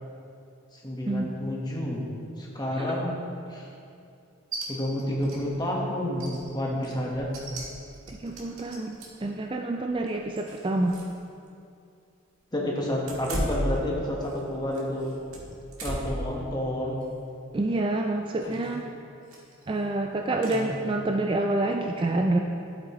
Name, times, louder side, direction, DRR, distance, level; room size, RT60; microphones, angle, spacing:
voice 1, 0.7-2.1 2.4-3.1 3.5-3.7 4.7-7.3 12.5-15.1 15.8-17.0 18.4-18.6 20.3-20.7, left 1 dB, 20° left, -3 dB, 1.2 m, -30 dB
sound 1, 4.5-4.7 5.0-5.4 5.7-5.8 6.1-9.3 9.8-11.2 11.5-11.6 13.0-14.4 14.7-16.3 16.7-17.0 18.4-18.8 19.3-19.6 20.4-20.6, right 1 dB, 85° right, 1.7 m, -36 dB
voice 2, 8.1-9.0 9.2-10.9 17.5-18.8 19.7-22.4, right 2 dB, 25° right, 3 dB, 0.3 m, -27 dB
11.5 x 8.2 x 3.0 m, 2.5 s
head